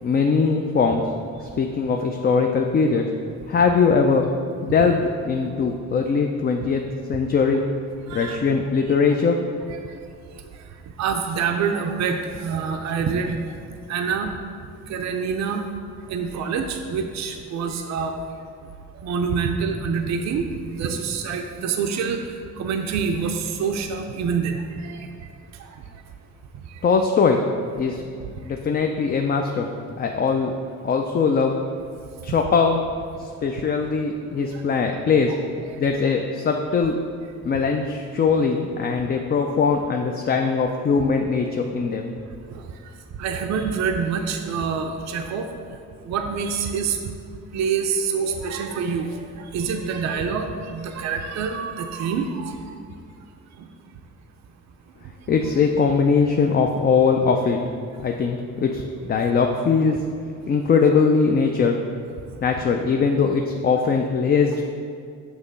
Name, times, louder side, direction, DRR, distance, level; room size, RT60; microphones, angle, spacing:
voice 1, 0.0-1.0 1.4-3.0 3.5-4.2 4.6-6.8 7.1-7.6 8.1-9.4 26.8-27.4 27.8-28.0 28.4-29.7 30.0-30.5 30.8-31.5 32.2-32.8 33.2-35.3 35.8-37.0 37.4-42.1 55.3-57.7 58.0-60.0 60.5-61.8 62.4-64.7, left 5 dB, 35° left, 3 dB, 0.4 m, -21 dB
voice 2, 8.1-8.6 9.7-9.9 11.0-13.4 13.9-14.3 14.9-15.6 16.1-18.1 19.0-22.2 22.6-25.3 26.7-26.8 33.5-33.6 34.4-34.9 35.2-35.4 35.6-35.8 42.5-42.6 43.2-45.5 46.0-47.0 47.5-52.7 53.6-53.7, right 6 dB, 65° right, 5 dB, 0.5 m, -26 dB
6.4 x 3.0 x 5.3 m, 2.2 s
cardioid pair, 90°, 30 cm